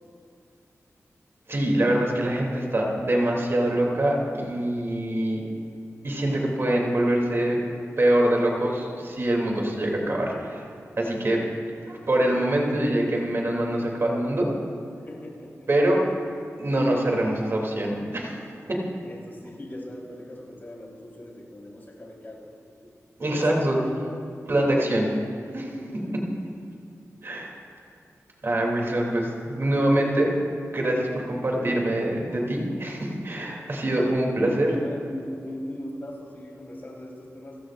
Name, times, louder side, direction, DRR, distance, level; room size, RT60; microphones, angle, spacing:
voice 1, 1.5-5.4 6.0-7.6 8.0-10.6 11.0-11.4 11.9-14.5 15.7-16.0 16.6-18.4 18.7-18.8 23.2-23.8 24.5-25.1 25.5-25.7 27.2-27.5 28.4-30.3 30.7-34.7, right 1 dB, 45° right, -1 dB, 2.9 m, -24 dB
voice 2, 15.1-15.7 19.0-22.5 23.3-24.2 25.9-26.4 34.4-37.6, left 1 dB, 35° left, -4 dB, 4.0 m, -39 dB
29.5 x 15.5 x 2.5 m, 2.5 s
wide cardioid pair, 125°, 6 cm